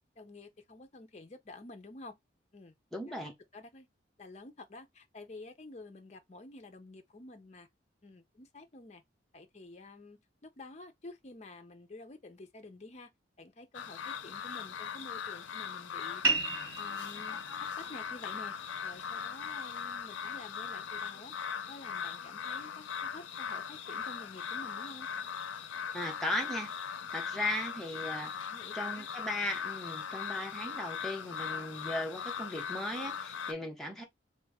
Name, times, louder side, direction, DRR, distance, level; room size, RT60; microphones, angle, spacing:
voice 1, 0.2-2.2 2.5-2.7 3.1-3.9 4.2-7.7 8.0-9.0 9.3-13.1 13.4-16.2 16.8-18.5 18.8-21.4 21.7-25.1 28.5-29.1, left 2 dB, 35° left, 0.5 m, -50 dB
voice 2, 2.9-3.3 25.9-28.3 28.7-34.0, left 1 dB, ahead, 0.7 m, -37 dB
sound 1, 13.7-33.5, left 7 dB, 85° left, 0.4 m, -39 dB
sound 2, 16.2-21.3, right 3 dB, 90° right, 1.4 m, -37 dB
2.9 x 2.6 x 3.5 m
head